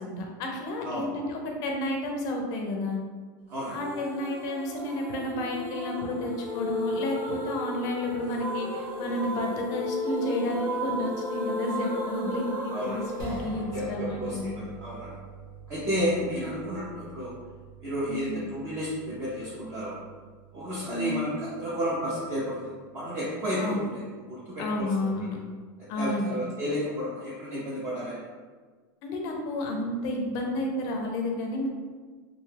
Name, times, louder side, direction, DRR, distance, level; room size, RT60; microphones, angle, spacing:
voice 1, 0.0-3.0 3.7-14.6 16.3-16.4 18.1-18.4 20.9-21.3 23.6-23.8 24.6-25.4 25.9-26.4 29.0-31.7, left 1 dB, 30° left, 1 dB, 0.4 m, -31 dB
sound 1, 3.6-14.5, equal, 40° right, 0.8 m, -34 dB
voice 2, 12.7-13.4 13.7-15.1 15.7-17.3 17.8-20.0 20.5-23.9 24.3-24.9 26.0-28.2, equal, 25° right, -8 dB, 0.5 m, -32 dB
sound 2, 13.2-25.5, right 3 dB, 80° right, 1.0 m, -47 dB
2.8 x 2.2 x 3.2 m, 1.5 s
supercardioid pair, 170°, 11 cm